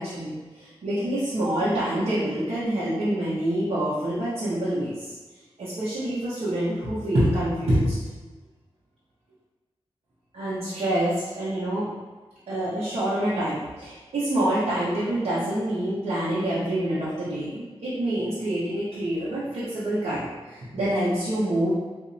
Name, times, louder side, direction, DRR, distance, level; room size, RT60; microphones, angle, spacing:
voice 1, 0.0-5.1 5.6-8.0 10.3-11.9 12.5-21.7, right 1 dB, 80° right, -10 dB, 0.9 m, -26 dB
4.2 x 2.6 x 2.6 m, 1.3 s
wide cardioid pair, 135°, 10 cm